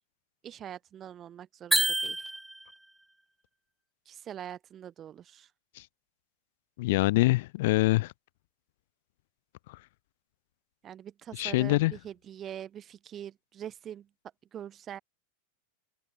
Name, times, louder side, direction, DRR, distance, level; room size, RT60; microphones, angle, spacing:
voice 1, 0.4-2.3 4.0-5.5 10.8-14.1 14.5-15.0, right 10 dB, 30° right, 4.9 m, -43 dB
sound 1, 1.7-2.8, right 2 dB, 5° right, 1.9 m, -28 dB
voice 2, 6.8-8.1 9.7-9.8 11.3-11.9, left 19 dB, 65° left, 0.5 m, -25 dB
hypercardioid pair, 105°, 0 cm